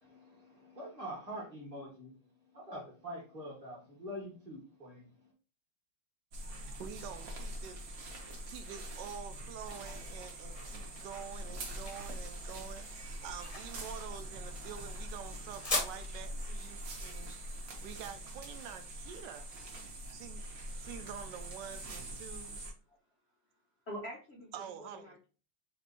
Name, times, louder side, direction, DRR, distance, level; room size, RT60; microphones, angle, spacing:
voice 1, 0.0-2.1 2.5-5.3, equal, 20° right, 1.2 m, -45 dB
sound 1, 6.3-22.7, right 1 dB, 55° right, 1.1 m, -44 dB
voice 2, 6.8-7.8 8.5-17.3 17.8-19.5 20.1-20.5 20.8-22.7 24.5-25.2, right 8 dB, 75° right, 1.0 m, -47 dB
sound 2, 10.4-19.2, left 2 dB, 35° left, 0.5 m, -42 dB
voice 3, 23.9-25.3, equal, 80° left, 0.5 m, -45 dB
3.4 x 2.8 x 4.1 m
omnidirectional pair, 2.4 m